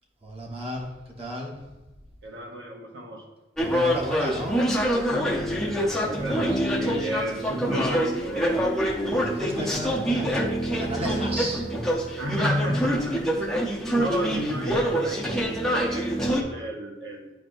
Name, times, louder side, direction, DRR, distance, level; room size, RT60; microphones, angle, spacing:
voice 1, 0.2-0.9 1.2-1.5 3.6-4.6 9.2-10.3 10.8-11.6, equal, 30° right, -2 dB, 1.1 m, -33 dB
voice 2, 2.2-3.3 5.5-8.7 12.2-17.3, equal, 65° right, -1 dB, 0.8 m, -33 dB
sound 1, 3.6-16.4, equal, ahead, 0.6 m, -25 dB
9.7 x 4.4 x 2.6 m, 1.1 s
head